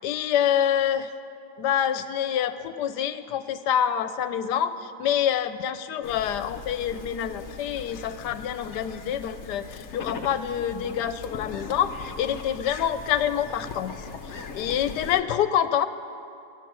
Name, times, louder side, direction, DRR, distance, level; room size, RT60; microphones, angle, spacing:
voice 1, 0.0-1.1 1.6-13.9 14.2-15.9, left 9 dB, 80° left, 12 dB, 1.2 m, -26 dB
sound 1, 6.0-15.2, left 5 dB, 55° left, 0.9 m, -40 dB
23.0 x 8.4 x 6.2 m, 2.6 s
omnidirectional pair, 1.8 m